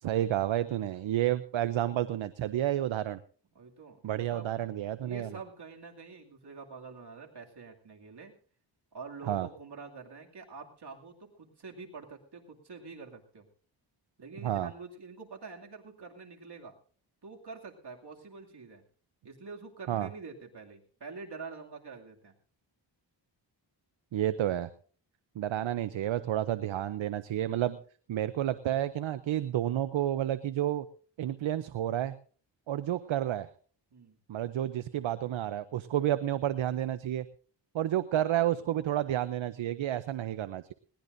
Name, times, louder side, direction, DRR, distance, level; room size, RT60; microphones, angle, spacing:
voice 1, 0.0-3.2 4.0-5.3 9.3-9.5 14.4-14.7 19.9-20.1 24.1-24.7 25.4-27.8 28.1-30.9 31.2-32.1 32.7-33.5 34.3-37.3 37.7-40.7, right 12 dB, 90° right, 13 dB, 0.7 m, -30 dB
voice 2, 3.5-4.1 4.3-4.5 5.0-8.3 8.9-13.5 14.2-16.8 17.2-18.8 19.2-22.3 33.9-34.2, right 4 dB, 60° right, 1 dB, 2.6 m, -46 dB
20.5 x 18.0 x 2.6 m, 0.43 s
cardioid pair, 65°, 45 cm